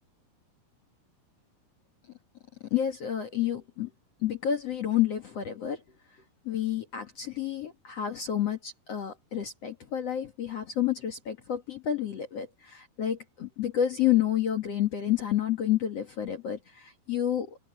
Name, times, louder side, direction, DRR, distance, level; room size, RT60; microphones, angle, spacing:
voice 1, 2.7-3.9 4.2-5.8 6.5-17.6, left 10 dB, 50° left, 2.2 m, -29 dB
omnidirectional pair, 4.5 m